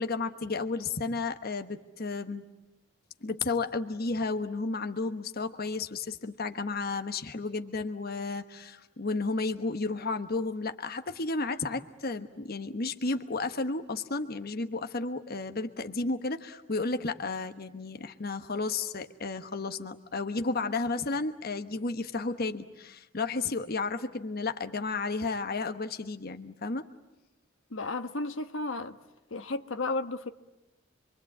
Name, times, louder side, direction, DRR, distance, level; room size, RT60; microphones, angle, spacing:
voice 1, 0.0-2.4 3.2-26.9, left 3 dB, 50° left, 7 dB, 1.2 m, -32 dB
voice 2, 27.7-29.0 29.3-30.3, left 3 dB, 70° left, 8 dB, 1.3 m, -33 dB
27.0 x 24.0 x 8.6 m, 1.1 s
head